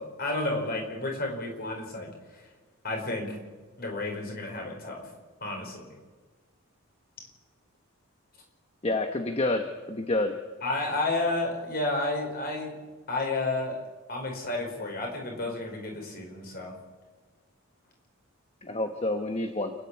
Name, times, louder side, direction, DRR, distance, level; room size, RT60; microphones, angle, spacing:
voice 1, 0.0-2.4 2.8-3.4 3.8-5.1 5.4-5.9 10.6-12.8 13.1-13.8 14.1-16.7, left 2 dB, 45° left, 1 dB, 5.2 m, -31 dB
voice 2, 8.8-10.3 18.6-19.7, left 2 dB, 30° left, 6 dB, 1.2 m, -28 dB
29.0 x 10.5 x 8.5 m, 1.4 s
head